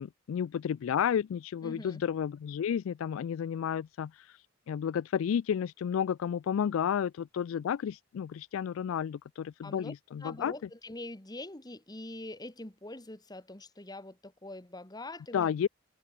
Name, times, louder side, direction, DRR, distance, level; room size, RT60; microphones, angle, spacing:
voice 1, 0.0-4.1 4.7-10.5 15.3-15.7, left 8 dB, 75° left, 0.3 m, -31 dB
voice 2, 1.6-2.0 9.6-9.9 10.2-15.5, left 2 dB, 20° left, 1.6 m, -44 dB
head